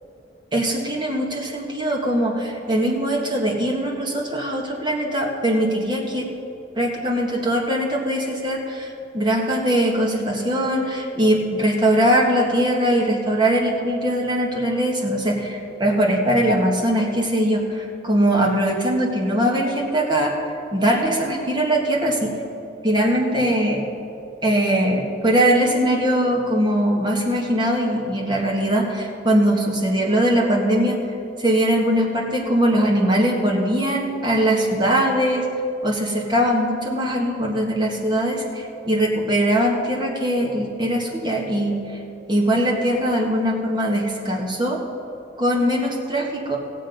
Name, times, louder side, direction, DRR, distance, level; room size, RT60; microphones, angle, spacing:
voice 1, 0.5-6.3 6.8-20.3 20.7-22.3 22.8-23.8 24.4-31.0 31.4-35.5 35.8-41.8 42.3-44.8 45.4-46.6, right 1 dB, 25° right, -2 dB, 1.6 m, -21 dB
16.5 x 7.6 x 5.3 m, 2.7 s
head